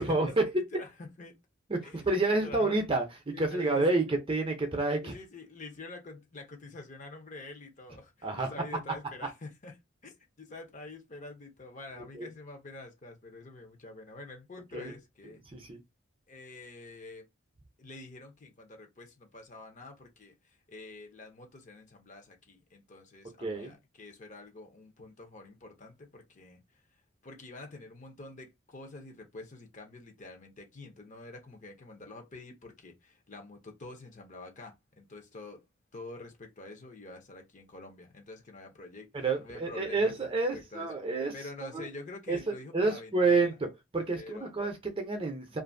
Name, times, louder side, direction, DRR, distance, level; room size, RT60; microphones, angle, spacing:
voice 1, 0.0-0.5 1.7-5.1 8.2-8.5 12.1-12.3 14.7-14.9 15.5-15.8 23.4-23.7 39.1-41.3 41.6-41.9 42.3-42.4 42.7-43.5 43.9-45.6, right 3 dB, 25° right, 0.6 m, -29 dB
voice 2, 0.5-1.4 1.8-2.0 2.4-2.8 3.3-4.0 5.0-9.8 10.0-15.4 16.3-17.3 17.8-26.6 27.2-35.6 35.9-40.1 40.5-40.9 41.3-43.6 44.1-44.5, left 2 dB, 35° left, 0.7 m, -47 dB
2.6 x 2.5 x 2.6 m
head